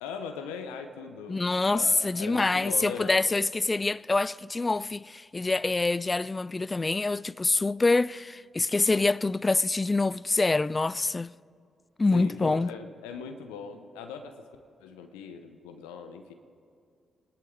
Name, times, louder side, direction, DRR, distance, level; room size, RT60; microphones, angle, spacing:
voice 1, 0.0-3.2 12.1-14.4 14.8-16.3, left 6 dB, 85° left, 0.8 m, -40 dB
voice 2, 1.3-11.3 12.0-12.7, left 3 dB, 30° left, 0.3 m, -26 dB
25.5 x 11.5 x 3.8 m
hypercardioid pair, 40°, 0 cm